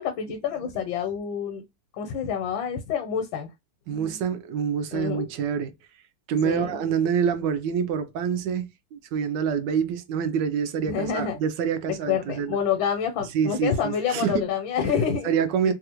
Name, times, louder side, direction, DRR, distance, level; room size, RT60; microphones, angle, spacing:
voice 1, 0.0-1.6 1.9-3.5 3.9-4.2 4.9-5.3 6.4-6.8 10.9-11.4 11.9-15.3 15.6-15.7, left 7 dB, 80° left, 1.4 m, -28 dB
voice 2, 3.9-5.7 6.3-12.6 13.3-14.4 14.8-14.9 15.2-15.7, right 7 dB, 75° right, 1.2 m, -26 dB
3.3 x 2.4 x 2.9 m
omnidirectional pair, 2.1 m